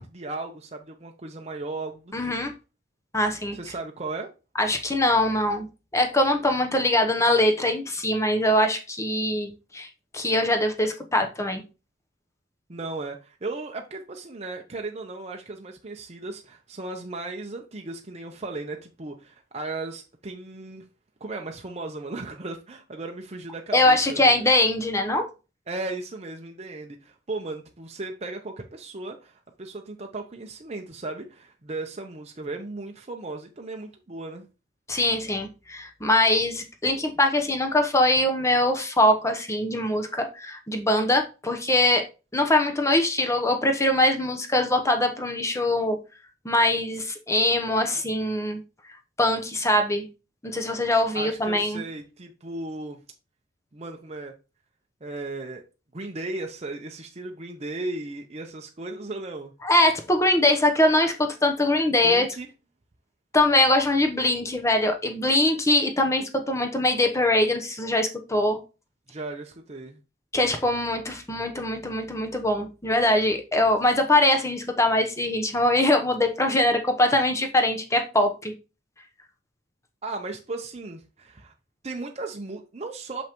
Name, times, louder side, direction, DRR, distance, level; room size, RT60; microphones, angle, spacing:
voice 1, 0.0-2.4 3.5-4.3 12.7-20.8 21.2-24.5 25.7-34.4 51.1-53.0 53.7-54.3 55.0-55.6 55.9-59.5 62.0-62.5 69.1-70.0 80.0-81.5 81.8-83.2, right 2 dB, 35° right, 0.7 m, -36 dB
voice 2, 2.1-2.5 3.1-3.6 4.6-5.7 5.9-9.9 10.1-11.6 23.7-25.3 34.9-42.0 42.3-46.0 46.4-48.6 49.2-50.1 50.4-51.8 59.6-62.3 63.3-68.6 70.3-78.5, left 1 dB, 15° left, 0.9 m, -22 dB
6.3 x 5.4 x 3.0 m
head